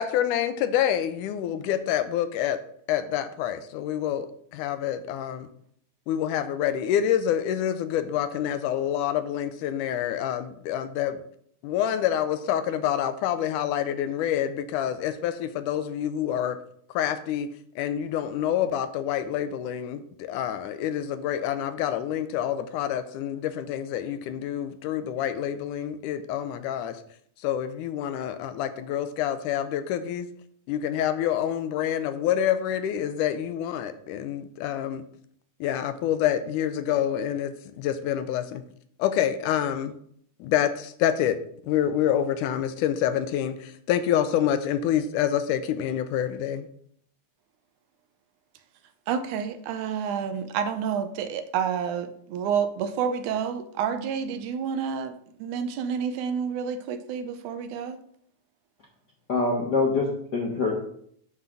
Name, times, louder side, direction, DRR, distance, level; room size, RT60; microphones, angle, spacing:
voice 1, 0.0-2.6 2.9-4.3 4.5-5.5 6.1-11.2 11.6-16.6 16.9-17.5 17.8-27.0 27.4-30.3 30.7-35.0 35.6-38.6 39.0-39.9 40.4-41.4 41.7-46.7, left 10 dB, 80° left, 11 dB, 2.1 m, -27 dB
voice 2, 49.1-58.0, right 7 dB, 80° right, 10 dB, 2.1 m, -29 dB
voice 3, 59.3-60.7, left 3 dB, 65° left, -1 dB, 1.0 m, -25 dB
9.6 x 3.8 x 7.0 m, 0.64 s
omnidirectional pair, 3.7 m